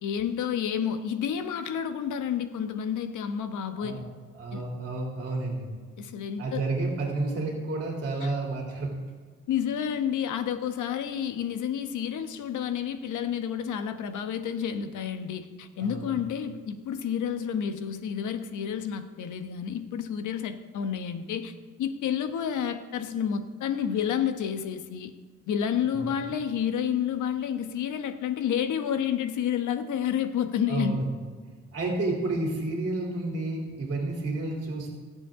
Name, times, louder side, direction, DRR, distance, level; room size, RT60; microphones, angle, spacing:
voice 1, 0.0-4.0 4.5-4.6 6.0-6.6 8.2-8.3 9.5-21.5 21.8-25.1 25.5-31.1, left 8 dB, 80° left, 8 dB, 1.3 m, -30 dB
voice 2, 4.3-5.7 6.4-8.9 15.8-16.2 25.9-26.1 30.7-31.1 31.7-34.9, right 2 dB, 40° right, -1 dB, 3.3 m, -30 dB
22.5 x 7.9 x 3.8 m, 1.6 s
cardioid pair, 90°, 30 cm